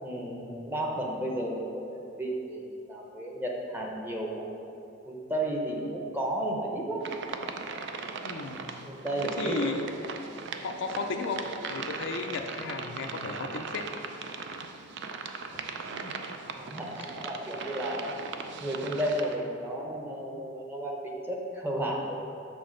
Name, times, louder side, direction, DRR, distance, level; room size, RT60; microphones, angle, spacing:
voice 1, 0.0-4.6 5.1-7.0 8.9-9.8 15.5-15.6 15.9-16.1 16.5-18.2 18.6-22.2, right 1 dB, 10° right, -1 dB, 0.7 m, -33 dB
sound 1, 7.0-19.4, right 5 dB, 60° right, 0.4 m, -39 dB
voice 2, 8.2-8.7 9.2-9.9 10.6-13.9, left 4 dB, 65° left, 4 dB, 0.5 m, -34 dB
6.2 x 4.0 x 6.3 m, 2.8 s
head